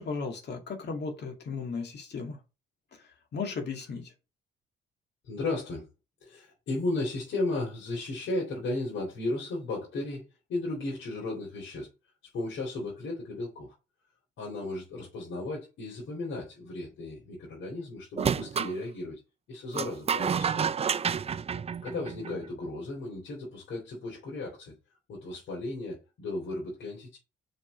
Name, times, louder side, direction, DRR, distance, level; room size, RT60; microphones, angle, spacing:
voice 1, 0.0-2.4 2.9-3.0 3.3-4.1, left 4 dB, 60° left, 2.3 m, -35 dB
voice 2, 5.2-5.9 6.2-11.9 12.2-13.7 14.4-19.2 19.5-20.8 21.8-24.8 25.1-27.2, left 2 dB, 80° left, 3.6 m, -35 dB
sound 1, 18.2-18.7 19.7-22.4, right 7 dB, 30° right, 0.5 m, -29 dB
5.8 x 5.1 x 5.2 m
cardioid pair, 90°, 20 cm